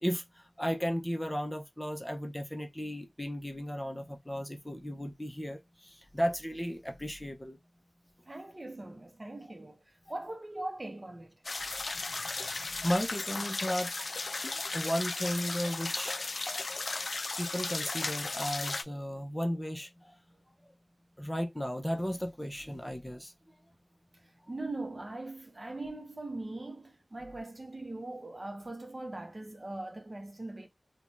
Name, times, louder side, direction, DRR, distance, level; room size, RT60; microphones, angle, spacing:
voice 1, 0.0-7.6 11.9-13.9 14.7-16.2 17.4-20.1 21.2-23.3, equal, 15° left, 0.6 m, -35 dB
voice 2, 8.3-11.4 24.2-30.7, right 2 dB, 40° right, 0.6 m, -41 dB
sound 1, 11.4-18.8, left 3 dB, 70° left, 0.3 m, -35 dB
2.6 x 2.2 x 3.1 m
wide cardioid pair, 55°, 0 cm